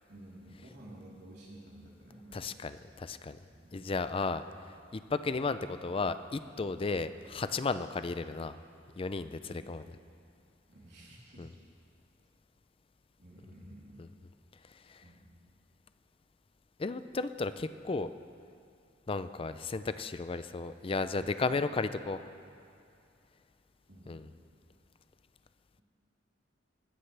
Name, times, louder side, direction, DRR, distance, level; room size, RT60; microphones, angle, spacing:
voice 1, 0.1-2.7 3.5-3.9 5.1-5.2 9.4-9.6 10.7-11.6 13.2-14.0 15.0-15.3 23.9-24.2, right 1 dB, 60° right, -6 dB, 3.7 m, -52 dB
voice 2, 2.3-3.4 3.7-4.4 4.9-8.6 9.0-9.8 11.4-11.5 14.0-14.1 14.9-15.0 16.8-18.1 19.1-22.2 24.1-24.3, left 3 dB, 30° left, 12 dB, 0.4 m, -34 dB
20.0 x 15.0 x 3.4 m, 2.5 s
head